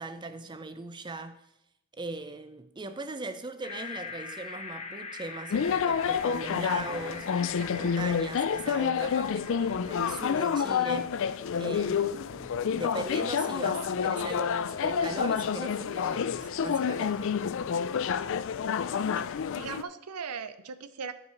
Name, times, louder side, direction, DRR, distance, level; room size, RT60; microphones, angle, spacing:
voice 1, 0.0-1.4 1.9-11.2 11.5-17.3, right 2 dB, 20° right, 0.5 m, -39 dB
sound 1, 3.6-11.8, left 4 dB, 30° left, 1.0 m, -43 dB
sound 2, 5.5-19.8, left 7 dB, 60° left, 0.4 m, -29 dB
voice 2, 19.1-21.1, right 6 dB, 85° right, 0.6 m, -39 dB
9.8 x 4.8 x 5.7 m
head